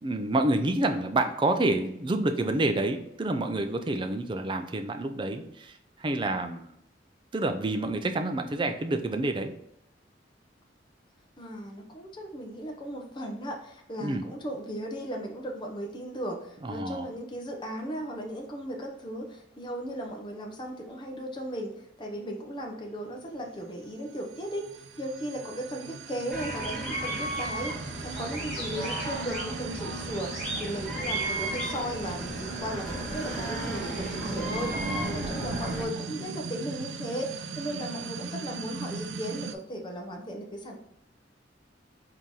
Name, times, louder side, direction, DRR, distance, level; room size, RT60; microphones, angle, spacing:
voice 1, 0.0-5.7 6.0-6.7 7.3-9.5 14.0-14.2 16.6-17.1 34.7-35.4, right 2 dB, 25° right, 6 dB, 0.4 m, -28 dB
voice 2, 11.4-40.8, equal, 25° left, 1 dB, 0.6 m, -36 dB
sound 1, 23.9-39.5, right 5 dB, 85° right, 0.4 m, -39 dB
sound 2, 26.3-35.8, right 1 dB, 5° left, 1.8 m, -34 dB
3.8 x 2.8 x 4.5 m, 0.77 s
head